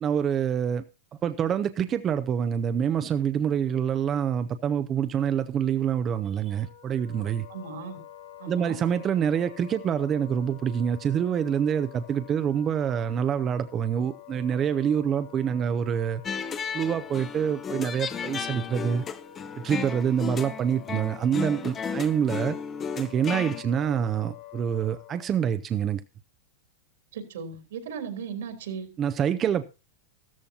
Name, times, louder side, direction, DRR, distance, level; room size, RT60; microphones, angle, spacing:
voice 1, 0.0-0.8 1.2-7.5 8.5-16.2 16.7-19.0 19.6-22.6 23.0-26.0 29.0-29.6, right 8 dB, 20° right, 0.5 m, -26 dB
Wind instrument woodwind instrument, 6.4-25.5, left 11 dB, 75° left, 3.9 m, -48 dB
voice 2, 7.5-8.0 8.4-8.8 27.1-28.9, right 6 dB, 80° right, 3.4 m, -37 dB
sound 1, 16.2-23.6, left 6 dB, 15° left, 0.7 m, -34 dB
14.5 x 13.5 x 2.8 m
supercardioid pair, 165°, 0 cm